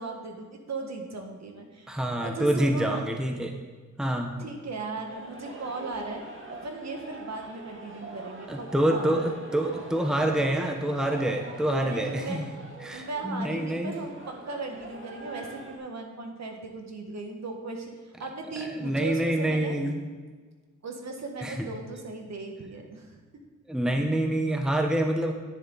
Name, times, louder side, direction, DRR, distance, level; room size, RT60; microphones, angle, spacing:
voice 1, 0.0-1.9 2.2-3.0 4.4-6.2 6.5-9.1 10.1-10.5 11.8-12.4 12.9-17.9 18.2-19.8 20.8-23.2, right 3 dB, 60° right, 3 dB, 1.6 m, -37 dB
voice 2, 1.9-3.5 4.0-4.3 8.5-12.5 12.8-13.9 18.6-20.1 21.4-21.7 23.7-25.3, right 1 dB, ahead, 3 dB, 0.9 m, -27 dB
sound 1, 5.1-15.8, right 2 dB, 40° right, 1.7 m, -43 dB
10.0 x 10.0 x 4.0 m, 1.4 s
wide cardioid pair, 120°, 30 cm